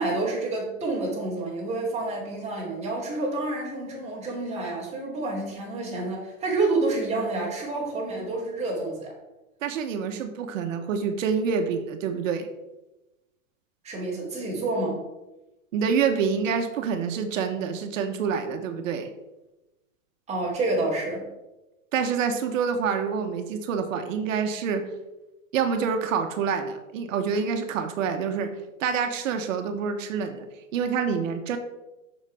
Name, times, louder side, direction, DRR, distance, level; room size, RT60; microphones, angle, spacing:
voice 1, 0.0-9.1 13.8-15.0 20.3-21.3, right 2 dB, 15° right, -4 dB, 3.3 m, -28 dB
voice 2, 9.6-12.5 15.7-19.1 21.9-24.8 25.5-28.5 28.8-30.5 30.7-31.6, right 6 dB, 65° right, 7 dB, 1.2 m, -27 dB
7.3 x 6.6 x 4.9 m, 1.0 s
supercardioid pair, 150°, 41 cm